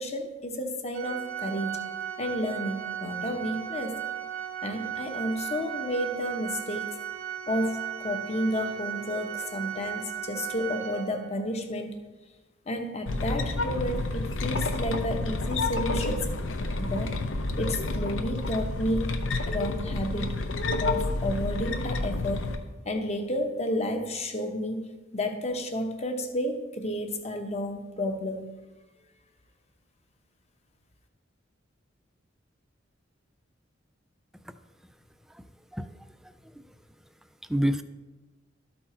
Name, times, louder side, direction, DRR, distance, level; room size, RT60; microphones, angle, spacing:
voice 1, 0.0-1.9 2.2-4.0 4.6-6.9 7.5-11.9 12.7-16.3 16.8-17.2 17.6-19.1 19.5-20.3 20.8-22.5 22.8-24.9 25.1-28.5, left 1 dB, 35° left, 5 dB, 0.9 m, -31 dB
Organ, 0.9-11.5, right 10 dB, 90° right, 0.8 m, -36 dB
sound 1, 13.1-22.6, left 2 dB, 75° left, 0.7 m, -29 dB
voice 2, 35.3-36.7 37.4-37.8, equal, ahead, 10 dB, 0.3 m, -31 dB
12.5 x 4.3 x 4.3 m, 1.2 s
head